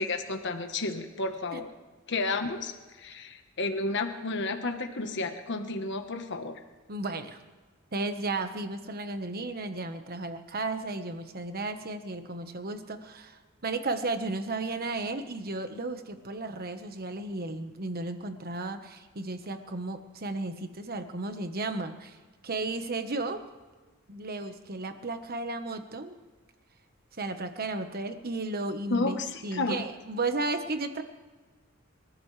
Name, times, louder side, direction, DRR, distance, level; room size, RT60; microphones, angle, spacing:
voice 1, 0.0-1.7 2.1-2.7 3.0-6.6 28.9-29.8, left 3 dB, 60° left, 6 dB, 1.3 m, -31 dB
voice 2, 6.9-7.4 7.9-22.2 22.4-23.4 24.1-26.2 27.2-31.0, right 2 dB, 45° right, 7 dB, 1.3 m, -34 dB
28.0 x 14.0 x 3.4 m, 1.3 s
head